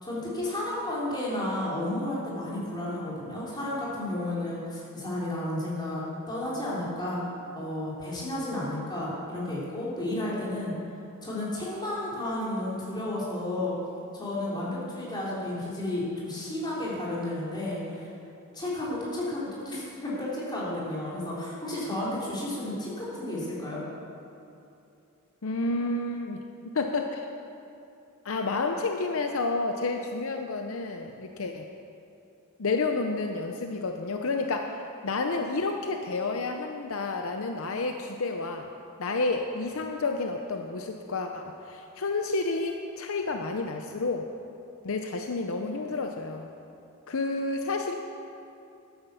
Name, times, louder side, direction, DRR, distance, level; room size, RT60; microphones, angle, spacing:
voice 1, 0.0-7.2 7.5-10.8 11.2-13.7 14.1-18.1 18.5-23.8, left 1 dB, 20° left, -7 dB, 3.6 m, -32 dB
voice 2, 25.4-26.4 26.7-27.3 28.2-31.7 32.6-38.7 39.0-44.3 44.8-46.5 47.1-47.9, left 3 dB, 65° left, 4 dB, 0.7 m, -30 dB
12.5 x 9.3 x 6.9 m, 2.7 s
head